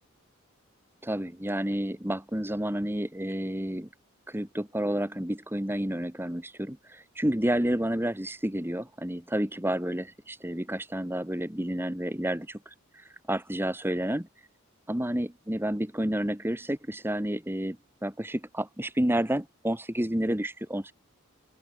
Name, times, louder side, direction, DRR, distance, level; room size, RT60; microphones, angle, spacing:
voice 1, 1.0-3.9 4.3-14.3 14.9-17.8 18.0-20.9, right 1 dB, 10° right, 1.6 m, -30 dB
open air
head